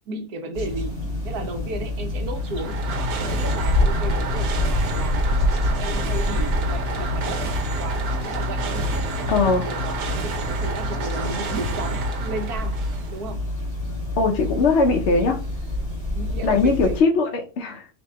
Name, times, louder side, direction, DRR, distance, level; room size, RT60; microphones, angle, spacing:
voice 1, 0.1-2.8 3.2-5.3 5.8-7.5 7.8-12.8 13.1-13.5 16.1-17.0, right 2 dB, 70° right, 1.4 m, -34 dB
sound 1, 0.5-17.0, left 1 dB, 15° right, 1.8 m, -27 dB
sound 2, 2.4-13.2, right 2 dB, 85° right, 1.4 m, -29 dB
voice 2, 9.3-9.7 14.2-15.4 16.4-17.9, left 3 dB, 55° left, 0.8 m, -20 dB
3.5 x 3.2 x 4.2 m
omnidirectional pair, 1.7 m